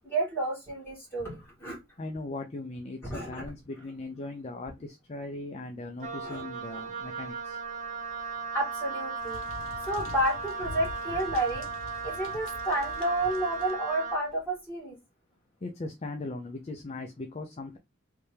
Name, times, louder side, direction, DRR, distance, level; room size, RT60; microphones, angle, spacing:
voice 1, 0.0-1.8 3.0-3.5 6.2-6.5 8.5-9.4 9.9-11.7 12.0-15.0, right 1 dB, 10° left, 2.2 m, -31 dB
voice 2, 2.0-7.6 15.6-17.8, left 2 dB, 30° left, 0.4 m, -39 dB
Wind instrument woodwind instrument, 6.0-14.3, right 4 dB, 35° right, 0.5 m, -36 dB
sound 1, 9.2-13.7, left 2 dB, 80° left, 0.8 m, -44 dB
3.4 x 2.8 x 3.2 m
head